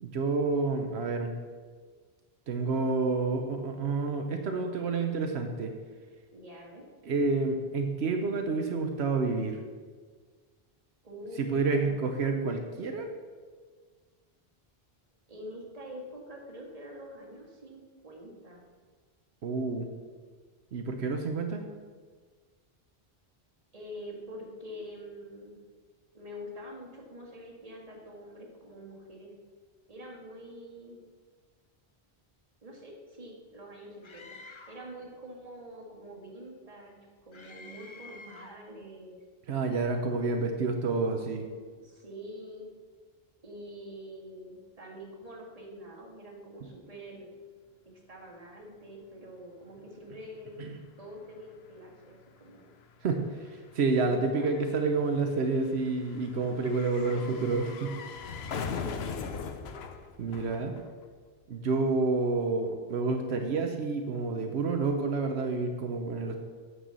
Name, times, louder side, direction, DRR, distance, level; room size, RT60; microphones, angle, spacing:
voice 1, 0.0-1.3 2.5-5.7 7.0-9.6 11.4-13.1 19.4-19.9 20.7-21.6 39.5-41.4 46.6-46.7 50.6-50.8 53.0-53.2 53.7-58.0 60.2-60.7 61.5-66.4, right 3 dB, 85° right, 4 dB, 1.1 m, -29 dB
voice 2, 6.3-6.8 11.0-12.0 15.3-18.6 23.7-25.6 26.1-29.3 29.9-31.0 32.6-34.4 34.7-36.9 37.3-39.2 41.8-42.7 43.4-47.3 47.9-50.5 51.0-52.7 54.0-54.6 57.1-57.4 58.4-59.0, equal, 35° right, -1 dB, 1.7 m, -45 dB
Screaming, 34.0-34.9 37.3-38.7, left 3 dB, 30° left, 0.7 m, -49 dB
sound 1, 50.6-50.7 50.9-61.3 61.5-61.6, left 5 dB, 80° left, 1.0 m, -41 dB
8.9 x 4.7 x 6.8 m, 1.5 s
omnidirectional pair, 1.1 m